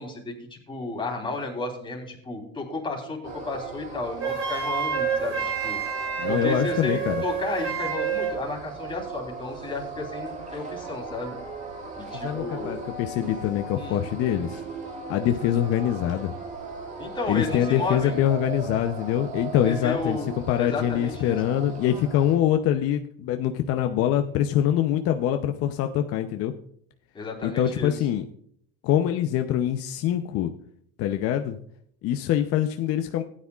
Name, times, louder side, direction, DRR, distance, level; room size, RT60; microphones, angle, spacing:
voice 1, 0.0-3.2 3.5-5.8 6.3-11.3 12.0-12.8 13.8-14.0 17.0-18.2 19.7-21.7 27.1-27.9, left 3 dB, 15° left, 0 dB, 3.6 m, -33 dB
sound 1, 3.2-22.3, right 4 dB, 25° right, 2.2 m, -38 dB
Wind instrument woodwind instrument, 4.2-8.4, right 7 dB, 50° right, 4.8 m, -28 dB
voice 2, 6.2-7.2 12.1-14.6 15.1-16.3 17.3-26.5 27.4-28.2 28.8-30.5 31.0-31.6 32.0-33.2, left 11 dB, 50° left, 6 dB, 0.7 m, -24 dB
16.0 x 9.8 x 2.4 m, 0.65 s
supercardioid pair, 125°, 30 cm